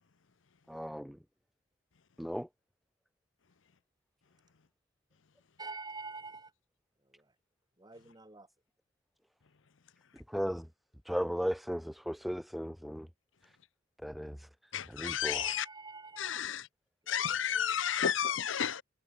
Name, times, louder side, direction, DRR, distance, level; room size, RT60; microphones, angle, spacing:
voice 1, 0.7-1.2 2.2-2.5 10.3-10.7 11.0-13.1 14.0-14.5 14.9-15.4, equal, ahead, 0.7 m, -36 dB
voice 2, 5.6-6.5 7.1-7.3 7.8-8.5 15.3-16.4 17.0-17.1, right 4 dB, 20° right, 2.6 m, -46 dB
voice 3, 14.7-15.6 16.2-16.6 17.1-18.8, left 8 dB, 80° left, 0.8 m, -32 dB
head